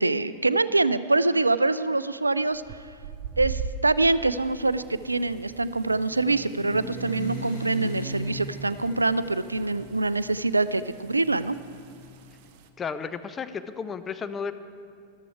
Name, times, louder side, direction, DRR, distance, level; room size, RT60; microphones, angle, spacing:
voice 1, 0.0-2.6 3.4-11.6, right 2 dB, 80° right, 16 dB, 0.3 m, -24 dB
sound 1, 2.5-12.7, right 6 dB, 45° right, 0.7 m, -42 dB
sound 2, 4.4-12.2, right 1 dB, 65° left, 3.0 m, -39 dB
voice 2, 12.8-14.5, left 6 dB, 20° left, 12 dB, 0.5 m, -33 dB
13.5 x 12.5 x 4.7 m, 2.4 s
figure-of-eight pair, 90°, 0 cm